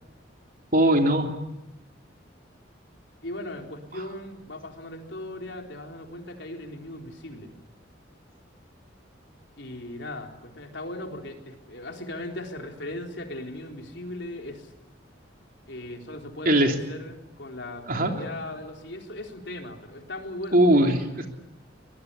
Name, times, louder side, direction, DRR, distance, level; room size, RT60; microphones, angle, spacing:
voice 1, 0.7-1.3 16.4-16.7 17.9-18.1 20.5-21.3, right 1 dB, 50° right, 4 dB, 3.2 m, -20 dB
voice 2, 3.2-7.5 9.6-14.7 15.7-20.9, left 1 dB, 65° left, 3 dB, 4.1 m, -38 dB
23.0 x 22.0 x 9.9 m, 0.88 s
head